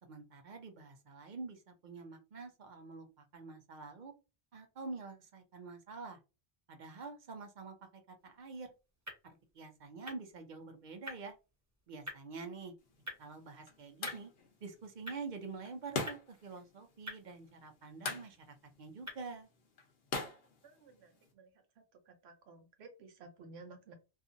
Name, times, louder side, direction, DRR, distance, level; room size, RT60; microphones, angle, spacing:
voice 1, 0.0-4.1 4.5-6.2 6.7-8.7 9.5-11.4 11.9-12.7 13.2-14.3 14.6-19.5, right 4 dB, 55° right, 6 dB, 0.6 m, -47 dB
sound 1, 8.2-19.5, left 1 dB, 20° right, 0.8 m, -52 dB
sound 2, 12.8-21.3, left 3 dB, 70° left, 1.0 m, -45 dB
voice 2, 20.6-21.5 22.1-23.9, right 3 dB, 85° right, 5 dB, 0.9 m, -55 dB
2.7 x 2.4 x 2.5 m, 0.29 s
omnidirectional pair, 1.1 m